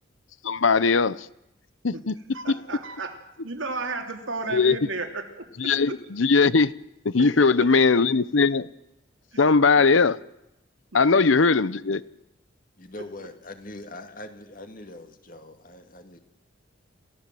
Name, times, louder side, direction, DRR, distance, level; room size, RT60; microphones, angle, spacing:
voice 1, 0.4-1.3 1.8-2.2 2.5-2.6 4.5-4.8 5.6-6.7 7.0-8.7 9.4-10.2 10.9-12.0, left 4 dB, 80° left, 0.8 m, -20 dB
voice 2, 2.3-3.2 3.4-5.2 7.2-7.7 9.3-9.4 11.4-11.5, right 3 dB, 85° right, 3.0 m, -33 dB
voice 3, 12.8-16.2, left 1 dB, 45° left, 2.3 m, -42 dB
28.0 x 15.5 x 7.7 m
head